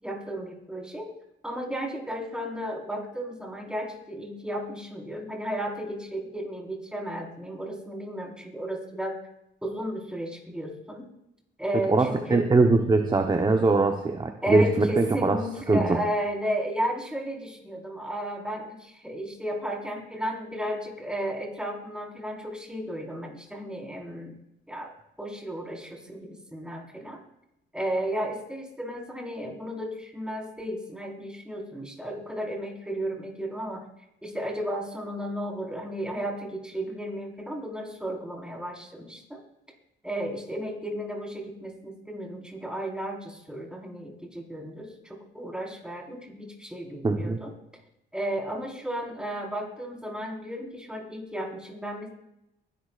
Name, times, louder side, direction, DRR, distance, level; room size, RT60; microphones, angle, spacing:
voice 1, 0.0-1.1 1.4-9.2 9.6-11.1 11.6-12.5 14.4-24.4 24.7-24.9 25.2-27.2 27.7-33.9 34.2-39.4 40.0-47.5 48.1-52.1, equal, 5° right, -1 dB, 4.6 m, -34 dB
voice 2, 11.9-15.4 15.7-16.0 47.0-47.4, right 3 dB, 20° right, 5 dB, 1.0 m, -22 dB
23.5 x 11.5 x 2.5 m, 0.83 s
cardioid pair, 90°, 20 cm